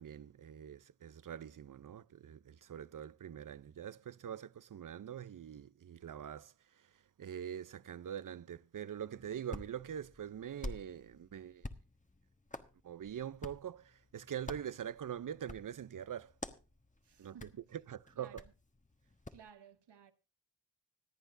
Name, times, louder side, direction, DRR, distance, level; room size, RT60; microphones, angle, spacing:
voice 1, 0.0-6.9 7.2-11.7 12.8-16.3 17.2-18.4, right 9 dB, 50° right, 0.6 m, -44 dB
Hands, 9.1-19.5, left 2 dB, 20° left, 1.3 m, -50 dB
voice 2, 17.0-17.6 18.2-18.5 19.3-20.1, right 8 dB, 75° right, 1.2 m, -58 dB
25.5 x 8.9 x 2.6 m
cardioid pair, 40°, 42 cm